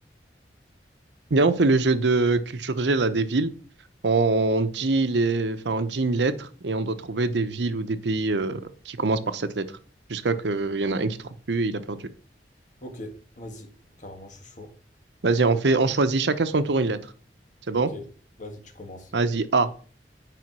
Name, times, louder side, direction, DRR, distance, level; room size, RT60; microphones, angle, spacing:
voice 1, 1.3-3.5 4.0-9.7 10.1-11.2 11.5-12.0 15.2-17.0 17.7-17.9 19.1-19.7, right 3 dB, 75° right, 0.8 m, -23 dB
voice 2, 12.8-13.7 14.0-14.7 17.7-18.0 18.4-19.1, left 1 dB, 45° left, 1.8 m, -41 dB
9.2 x 5.0 x 6.0 m
head